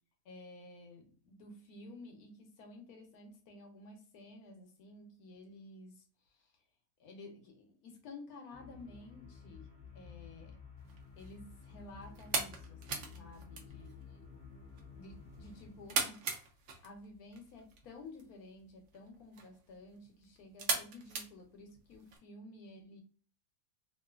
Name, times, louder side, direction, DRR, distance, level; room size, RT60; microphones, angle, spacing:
voice 1, 0.2-6.0 7.0-9.7 9.9-10.6 11.2-14.5 14.9-16.3 16.8-23.0, left 2 dB, 85° left, 4 dB, 1.2 m, -53 dB
sound 1, 8.5-16.0, left 5 dB, 10° left, 0.5 m, -53 dB
sound 2, 10.8-22.2, right 4 dB, 65° right, 0.9 m, -41 dB
3.0 x 2.4 x 2.3 m, 0.41 s
omnidirectional pair, 1.5 m